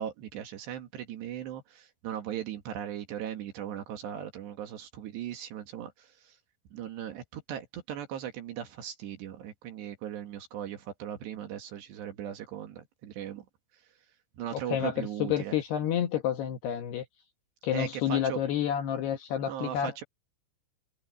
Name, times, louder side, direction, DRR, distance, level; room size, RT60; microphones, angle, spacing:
voice 1, 0.0-6.4 6.7-13.5 14.4-15.6 17.7-18.4 19.4-20.0, right 10 dB, 65° right, 3.5 m, -38 dB
voice 2, 14.5-17.0 17.6-20.0, left 10 dB, 65° left, 2.9 m, -29 dB
omnidirectional pair, 6.0 m